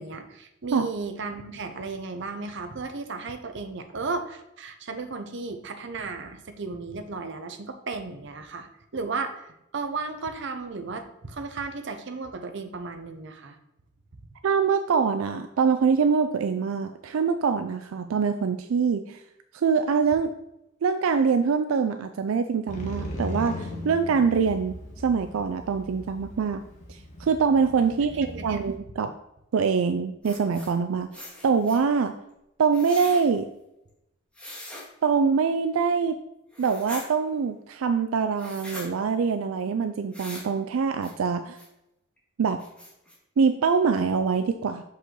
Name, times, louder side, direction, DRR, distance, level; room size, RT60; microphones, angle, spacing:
voice 1, 0.0-8.7 8.9-9.4 9.7-13.6 27.9-28.0 28.3-28.6, right 4 dB, 60° right, 7 dB, 0.7 m, -34 dB
voice 2, 14.4-19.2 19.5-20.3 20.8-26.6 26.9-29.1 29.5-32.1 32.6-33.5 35.0-36.2 36.6-41.6 42.4-42.6 43.4-44.8, right 5 dB, 85° right, 9 dB, 0.4 m, -24 dB
Motorcycle, 22.7-28.8, left 1 dB, 40° left, 1.2 m, -38 dB
sound 1, 30.2-30.7 31.1-31.8 32.7-33.2 34.3-34.9 36.5-37.1 38.4-38.9 40.1-40.5 41.0-41.1 41.5-41.7 42.2-42.3 42.6-43.1, left 1 dB, 5° left, 1.6 m, -41 dB
6.2 x 5.4 x 3.8 m, 0.85 s
head